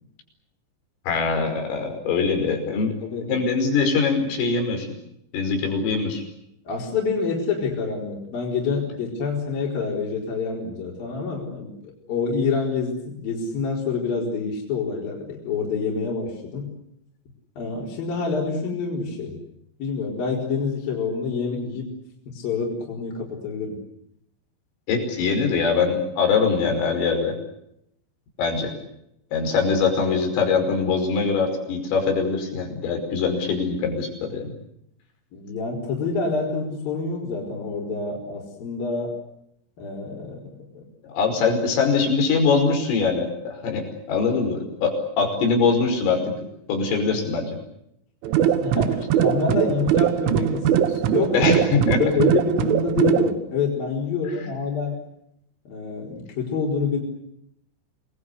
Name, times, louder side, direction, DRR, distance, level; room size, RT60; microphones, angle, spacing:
voice 1, 1.1-2.9 3.3-4.9 5.3-6.2 24.9-27.3 28.4-28.7 29.3-34.6 41.1-46.2 46.7-47.5 51.3-52.0, left 5 dB, 80° left, 4 dB, 7.8 m, -22 dB
voice 2, 3.0-3.4 6.7-16.7 17.6-19.4 19.8-21.9 22.3-23.8 35.3-39.2 39.8-40.9 48.6-51.6 52.0-55.0 55.7-57.0, left 4 dB, 45° left, -3 dB, 6.0 m, -27 dB
sound 1, 48.2-53.3, right 10 dB, 75° right, 3.6 m, -21 dB
29.0 x 21.0 x 8.2 m, 0.78 s
omnidirectional pair, 5.9 m